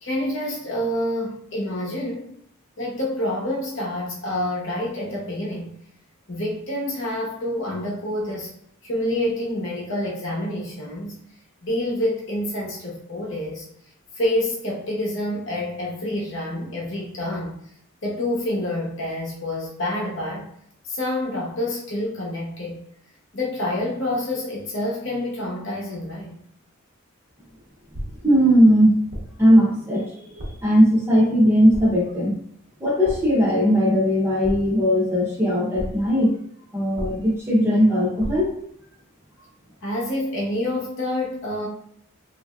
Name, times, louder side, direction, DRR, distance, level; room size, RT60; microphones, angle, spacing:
voice 1, 0.0-2.3 2.8-5.7 6.3-8.5 8.8-11.2 11.6-13.7 14.2-17.6 18.0-20.5 20.9-22.8 23.3-26.3 39.8-41.7, left 1 dB, 60° left, -3 dB, 0.8 m, -27 dB
sound 1, 27.9-28.4 29.1-29.5 30.4-30.8 31.7-32.2 33.0-33.5 34.4-35.0 35.8-36.2 37.0-37.5 38.2-38.6, equal, 75° right, 1.0 m, -34 dB
voice 2, 28.2-29.0 29.4-32.4 32.8-36.4 36.7-38.6, equal, 10° right, -5 dB, 0.7 m, -18 dB
3.0 x 2.6 x 2.3 m, 0.66 s
head